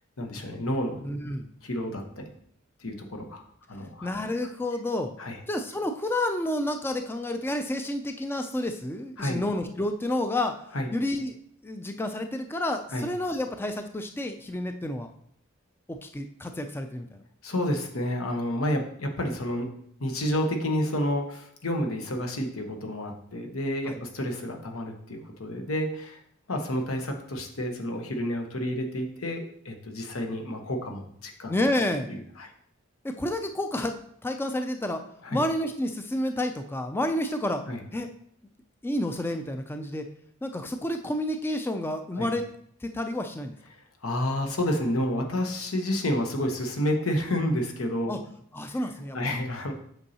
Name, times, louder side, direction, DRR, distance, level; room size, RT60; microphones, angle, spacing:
voice 1, 0.2-1.0 1.6-2.3 2.8-3.4 3.7-4.1 5.2-5.4 9.2-9.4 10.7-10.9 12.9-13.1 17.4-19.7 20.0-26.2 26.5-31.5 32.1-32.5 35.2-35.4 37.7-37.8 42.2-42.3 43.7-48.1 48.8-48.9 49.1-49.7, left 1 dB, 85° left, 3 dB, 1.1 m, -30 dB
voice 2, 1.0-1.5 4.0-5.1 5.5-10.5 10.9-11.3 11.6-15.1 15.9-17.2 23.9-24.0 31.5-32.1 33.0-33.9 34.2-35.0 35.3-37.6 37.9-38.1 38.8-40.1 40.4-42.4 42.8-43.6 48.1-48.2 48.5-49.2, left 1 dB, 10° left, 6 dB, 0.3 m, -30 dB
8.0 x 5.4 x 2.8 m, 0.67 s
head